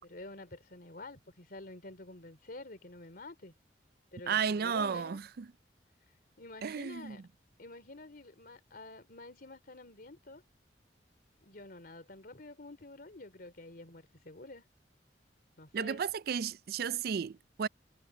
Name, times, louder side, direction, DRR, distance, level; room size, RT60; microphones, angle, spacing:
voice 1, 0.0-3.5 4.1-5.2 6.4-7.2 7.6-10.4 11.4-14.6 15.6-16.0, left 2 dB, 55° left, 3.1 m, -49 dB
voice 2, 4.3-5.5 6.6-7.2 15.7-17.7, right 7 dB, 60° right, 0.4 m, -33 dB
head